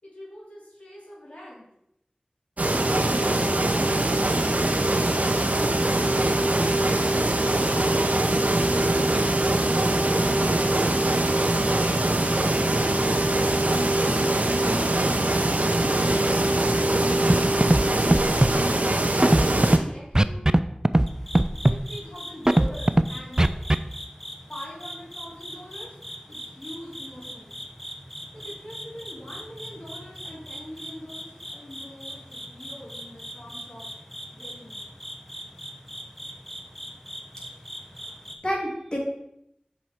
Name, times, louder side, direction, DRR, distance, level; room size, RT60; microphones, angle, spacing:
voice 1, 0.0-1.7 3.9-4.5 5.5-6.7 10.1-10.6 14.1-15.0 16.1-17.0 17.5-18.1 19.0-20.4 21.7-23.6 24.5-25.9 26.3-27.6 28.3-33.9 34.3-35.0, equal, 55° left, -6 dB, 3.4 m, -43 dB
sound 1, 2.6-19.8, right 1 dB, 70° right, 0.8 m, -22 dB
Scratching (performance technique), 17.3-17.4 17.6-17.8 18.1-18.5 19.2-19.8 20.1-20.6 20.8-21.1 21.3-21.8 22.5-23.0 23.4-23.8, right 1 dB, 25° right, 0.4 m, -17 dB
sound 2, 21.1-38.4, equal, 10° left, 1.1 m, -41 dB
voice 2, 37.9-39.0, equal, 35° left, -3 dB, 2.8 m, -31 dB
7.7 x 5.5 x 4.5 m, 0.80 s
wide cardioid pair, 45°, 3 cm